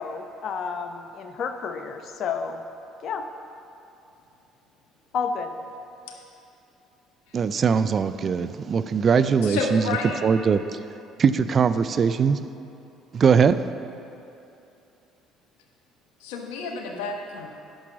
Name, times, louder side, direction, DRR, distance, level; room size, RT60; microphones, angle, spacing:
voice 1, 0.0-2.6 3.0-3.2 5.1-5.5, left 5 dB, 55° left, 7 dB, 0.8 m, -30 dB
voice 2, 7.3-9.8 10.2-10.6 11.2-12.4 13.1-13.6, right 6 dB, 45° right, 13 dB, 0.4 m, -21 dB
voice 3, 9.4-10.2 16.2-17.5, left 4 dB, 85° left, 2 dB, 1.2 m, -30 dB
10.5 x 6.0 x 7.3 m, 2.8 s
hypercardioid pair, 70°, 0 cm